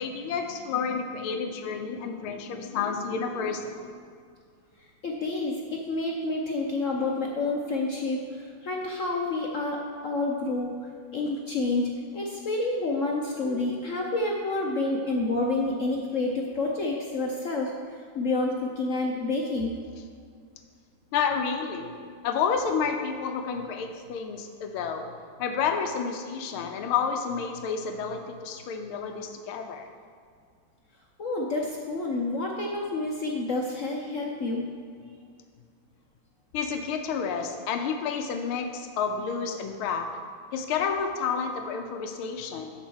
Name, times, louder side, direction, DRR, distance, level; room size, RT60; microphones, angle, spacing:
voice 1, 0.0-4.0 21.1-21.9 22.2-25.1 25.4-29.9 36.5-40.1 40.5-42.7, left 6 dB, 90° left, 5 dB, 1.6 m, -30 dB
voice 2, 5.0-17.7 18.1-19.7 31.2-34.7, left 2 dB, 60° left, 0 dB, 0.8 m, -29 dB
8.3 x 6.2 x 6.3 m, 2.1 s
omnidirectional pair, 2.2 m